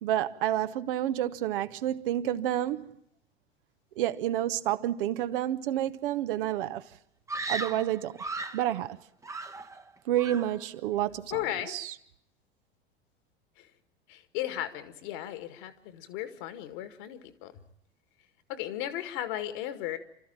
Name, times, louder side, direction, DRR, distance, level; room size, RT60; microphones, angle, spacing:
voice 1, 0.0-2.9 4.0-6.8 7.5-8.2 8.5-9.0 10.1-11.9, right 12 dB, 55° right, 1.0 m, -29 dB
Screaming, 7.3-8.7 9.2-9.9 10.2-10.6, right 3 dB, 10° right, 1.0 m, -36 dB
voice 2, 11.3-11.8 13.6-13.7 14.1-17.5 18.5-20.0, left 13 dB, 50° left, 2.0 m, -35 dB
29.0 x 13.5 x 8.9 m
figure-of-eight pair, 80°, 32 cm